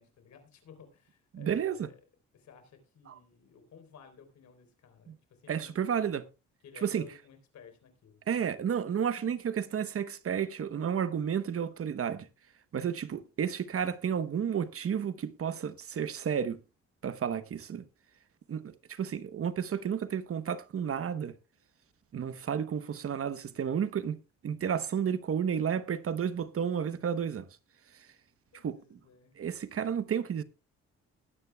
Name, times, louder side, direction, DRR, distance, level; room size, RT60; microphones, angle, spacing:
voice 1, 0.0-2.0 2.3-5.7 6.6-8.2 17.2-17.6 28.5-29.3, left 7 dB, 65° left, 3.8 m, -55 dB
voice 2, 1.3-1.9 3.1-3.2 5.1-5.2 5.5-6.3 6.8-7.1 8.3-12.3 12.7-16.6 17.0-17.8 18.5-21.4 22.1-24.2 24.4-27.5 27.9-28.1 28.6-29.0 29.4-30.4, right 8 dB, 50° right, 1.0 m, -32 dB
20.5 x 9.6 x 2.3 m
cardioid pair, 90°, 30 cm